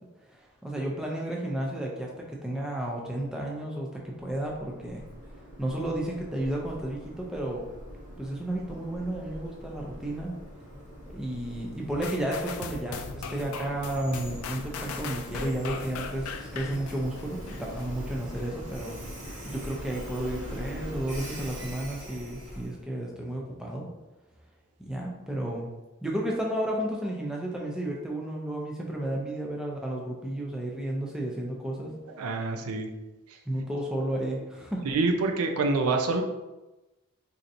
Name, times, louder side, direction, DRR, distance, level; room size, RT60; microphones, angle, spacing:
voice 1, 0.3-5.0 5.6-7.6 8.2-10.3 11.1-19.0 19.4-23.9 24.8-25.7 26.0-31.9 33.5-34.8, right 1 dB, 5° right, -2 dB, 0.5 m, -32 dB
Train, 4.0-22.8, equal, 35° right, 1.3 m, -42 dB
sound 1, 12.0-17.9 18.4-18.5, left 6 dB, 75° left, 0.3 m, -39 dB
voice 2, 32.2-32.9 33.3-33.4 34.8-36.2, right 3 dB, 85° right, 4 dB, 0.5 m, -26 dB
4.3 x 2.7 x 2.6 m, 1.0 s
head